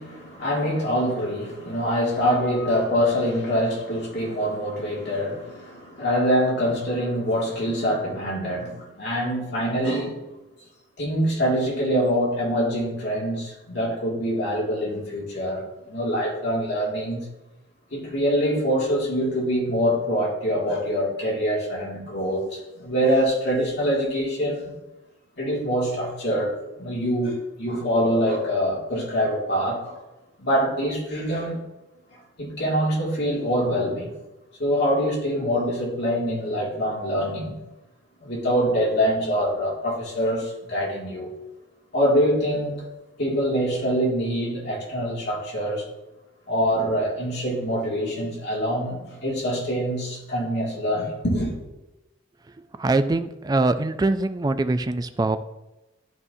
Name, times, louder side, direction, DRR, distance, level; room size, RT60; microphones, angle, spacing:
voice 1, 0.0-10.2 11.0-17.2 17.9-24.7 25.4-30.0 30.4-31.6 32.4-34.1 34.6-37.6 38.2-41.3 41.9-42.8 43.2-45.9 46.5-51.5, equal, 60° left, -4 dB, 2.3 m, -24 dB
voice 2, 52.8-55.4, right 2 dB, 20° right, 11 dB, 0.3 m, -23 dB
12.5 x 4.1 x 2.7 m, 1.0 s
head